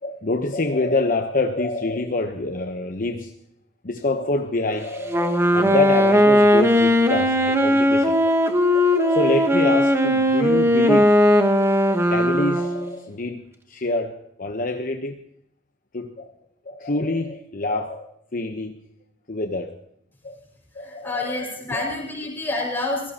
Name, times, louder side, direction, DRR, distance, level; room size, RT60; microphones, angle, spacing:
voice 1, 0.0-3.3 3.8-8.4 8.7-11.2 11.9-13.4 13.7-15.2 15.9-16.3 16.6-18.8 19.3-19.8 20.2-20.4 20.7-21.4 21.7-21.9, left 2 dB, 50° left, 5 dB, 1.0 m, -26 dB
Wind instrument woodwind instrument, 5.1-13.0, equal, 15° right, 1.3 m, -18 dB
voice 2, 20.8-23.1, left 2 dB, 10° left, -1 dB, 5.8 m, -28 dB
23.5 x 17.0 x 2.9 m, 0.73 s
head